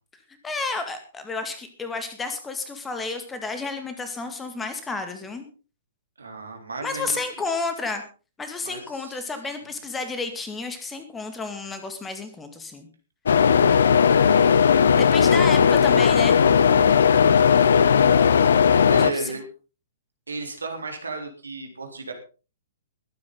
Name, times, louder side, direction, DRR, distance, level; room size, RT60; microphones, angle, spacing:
voice 1, 0.4-5.5 6.8-8.0 8.4-12.9 14.9-16.4 19.1-19.3, left 3 dB, 10° left, 8 dB, 2.2 m, -31 dB
voice 2, 6.2-7.2 8.6-9.2 13.4-15.4 17.4-17.9 18.9-19.4 20.3-22.1, right 3 dB, 70° right, 4 dB, 3.7 m, -36 dB
sound 1, 13.3-19.1, left 7 dB, 60° left, 0.9 m, -17 dB
21.5 x 9.6 x 4.0 m, 0.34 s
figure-of-eight pair, 115°, 0 cm